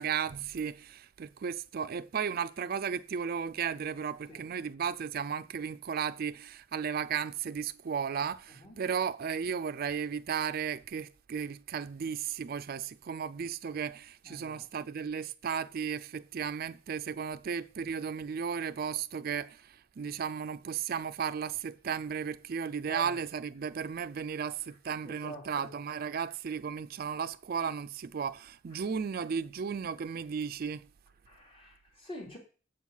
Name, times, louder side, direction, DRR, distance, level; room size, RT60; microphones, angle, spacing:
voice 1, 0.0-30.9, right 7 dB, 50° right, 0.4 m, -35 dB
voice 2, 14.2-14.6 22.9-23.1 25.0-25.7 31.3-32.4, right 1 dB, 30° left, 2.7 m, -45 dB
7.7 x 5.5 x 6.3 m
head